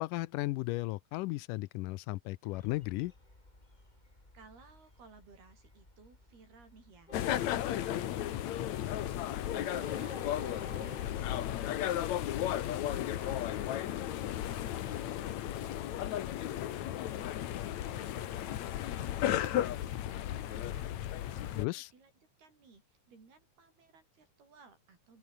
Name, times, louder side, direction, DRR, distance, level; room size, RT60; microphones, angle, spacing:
voice 1, 0.0-3.1 21.6-21.9, left 20 dB, 85° left, 1.9 m, -35 dB
Train, 2.5-15.5, left 1 dB, 10° left, 3.9 m, -54 dB
voice 2, 4.3-13.5 14.1-22.1 22.4-25.2, right 4 dB, 85° right, 8.9 m, -60 dB
sound 1, 7.1-21.7, left 12 dB, 60° left, 2.1 m, -34 dB
open air
omnidirectional pair, 4.4 m